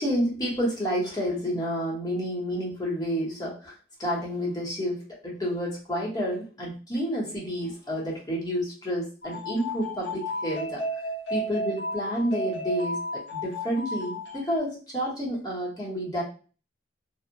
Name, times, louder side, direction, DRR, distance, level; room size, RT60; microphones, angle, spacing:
voice 1, 0.0-10.8 11.3-16.2, equal, 20° left, -4 dB, 0.8 m, -30 dB
sound 1, 9.2-14.6, equal, 70° left, 0.8 m, -33 dB
2.8 x 2.0 x 2.5 m, 0.38 s
head